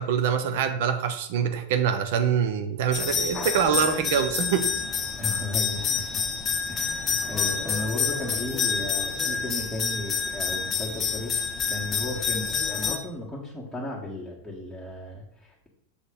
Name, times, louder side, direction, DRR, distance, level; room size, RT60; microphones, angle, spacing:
voice 1, 0.0-4.7, right 7 dB, 50° right, 8 dB, 0.8 m, -25 dB
sound 1, 2.9-13.0, left 6 dB, 25° left, 0.9 m, -28 dB
voice 2, 5.2-6.2 6.7-15.7, left 2 dB, 5° right, -5 dB, 1.8 m, -35 dB
7.0 x 4.1 x 5.2 m, 0.70 s
figure-of-eight pair, 90°, 0 cm